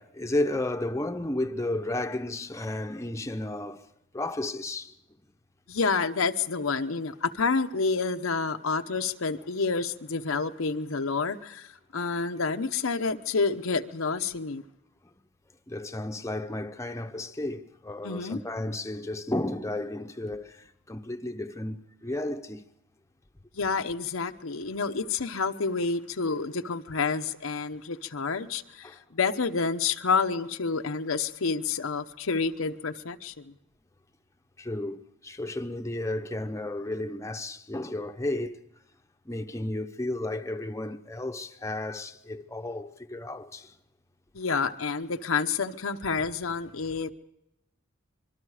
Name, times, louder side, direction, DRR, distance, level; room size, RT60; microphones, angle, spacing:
voice 1, 0.0-3.8 4.1-4.9 15.7-20.5 20.9-22.6 28.8-28.9 34.6-35.0 35.2-38.6 39.3-43.7, left 1 dB, 15° left, 0.8 m, -33 dB
voice 2, 5.7-14.6 18.0-18.4 23.5-33.5 44.3-47.1, left 4 dB, 90° left, 0.9 m, -29 dB
25.5 x 22.5 x 4.9 m
head